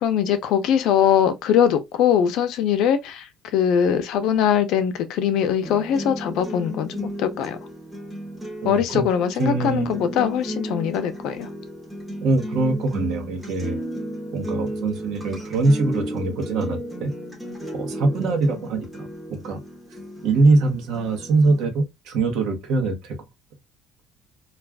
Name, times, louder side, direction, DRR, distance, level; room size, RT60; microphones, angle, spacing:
voice 1, 0.0-3.3 3.5-7.6 8.6-11.5, left 8 dB, 65° left, 0.5 m, -21 dB
sound 1, 5.6-21.6, right 1 dB, 5° right, 0.9 m, -34 dB
voice 2, 8.6-9.0 9.4-10.0 12.2-13.8 14.3-17.1 17.7-19.6 20.2-23.2, right 3 dB, 70° right, 0.9 m, -23 dB
2.4 x 2.3 x 3.3 m
cardioid pair, 160°, 0 cm